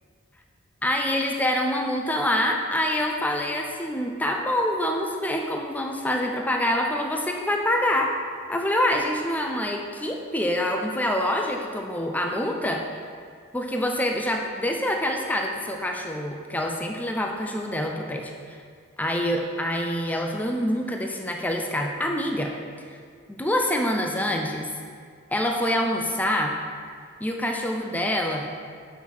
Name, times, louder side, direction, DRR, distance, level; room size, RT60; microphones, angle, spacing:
voice 1, 0.8-8.1 8.5-12.9 13.5-18.6 19.0-23.0 23.3-24.7 25.3-26.6 27.2-28.5, left 1 dB, 10° left, 2 dB, 0.5 m, -26 dB
5.7 x 5.6 x 6.2 m, 2.1 s
head